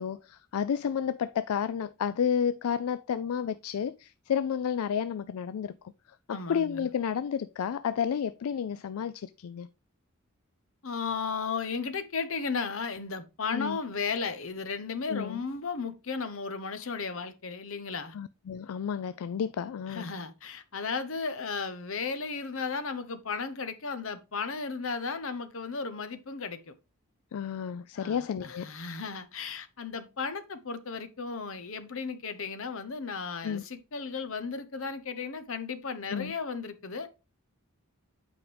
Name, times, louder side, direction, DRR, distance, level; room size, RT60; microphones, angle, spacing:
voice 1, 0.0-5.7 6.3-9.7 13.5-13.8 15.1-15.4 18.1-20.1 27.3-28.7 33.4-33.6 36.1-36.3, left 7 dB, 80° left, 0.4 m, -31 dB
voice 2, 6.3-6.9 10.8-18.1 19.9-26.7 28.0-37.2, left 5 dB, 65° left, 0.9 m, -35 dB
8.6 x 5.1 x 3.3 m
head